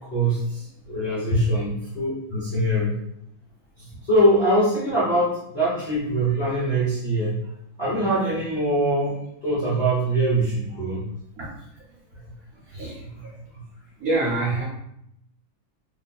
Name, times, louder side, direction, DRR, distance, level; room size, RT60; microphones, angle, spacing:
voice 1, 0.1-2.9 4.0-7.4 7.8-9.2 9.4-11.0 13.2-13.3, right 1 dB, 30° left, -8 dB, 0.8 m, -23 dB
voice 2, 14.0-14.6, right 2 dB, 60° right, -4 dB, 1.0 m, -24 dB
3.2 x 2.3 x 4.0 m, 0.75 s
omnidirectional pair, 2.2 m